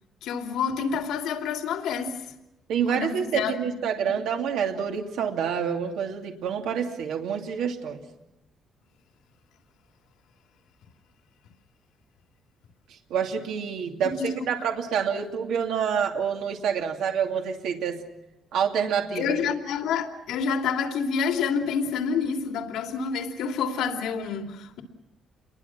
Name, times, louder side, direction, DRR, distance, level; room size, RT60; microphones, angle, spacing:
voice 1, 0.2-2.2 2.9-3.6 4.0-4.1 14.0-14.4 19.1-24.8, left 6 dB, 85° left, 4 dB, 3.0 m, -28 dB
voice 2, 2.7-8.0 13.1-18.0 18.5-19.2, right 7 dB, 80° right, 2 dB, 2.7 m, -27 dB
29.0 x 22.5 x 6.0 m, 0.92 s
cardioid pair, 180°, 0 cm